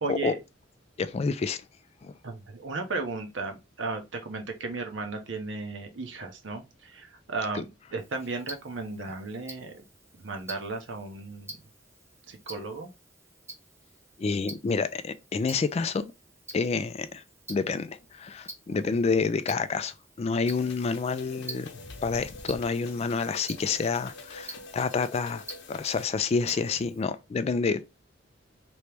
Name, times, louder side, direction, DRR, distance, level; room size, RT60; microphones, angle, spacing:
voice 1, 0.0-0.4 2.2-9.8 10.1-11.6 12.3-12.9, right 3 dB, 65° right, 0.8 m, -35 dB
voice 2, 1.0-1.6 2.0-2.1 7.5-7.6 14.2-16.1 16.5-17.2 17.5-21.7 22.0-28.0, left 4 dB, 30° left, 0.3 m, -28 dB
Tick-tock, 8.0-27.0, right 2 dB, 15° right, 0.8 m, -48 dB
sound 1, 20.4-26.1, left 3 dB, 60° left, 0.7 m, -45 dB
3.1 x 2.9 x 3.3 m
head